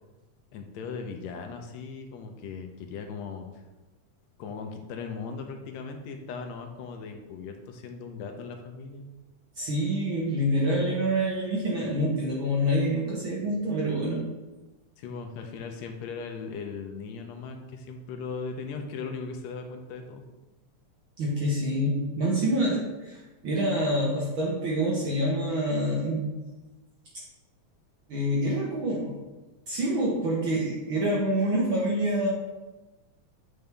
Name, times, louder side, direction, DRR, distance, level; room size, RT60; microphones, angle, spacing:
voice 1, 0.5-3.5 4.4-9.0 15.0-20.2, left 5 dB, 75° left, 4 dB, 1.8 m, -38 dB
voice 2, 9.5-14.2 21.2-26.3 28.1-29.1 29.7-32.3, equal, 60° right, -4 dB, 1.3 m, -26 dB
7.7 x 5.4 x 3.4 m, 1.1 s
omnidirectional pair, 3.5 m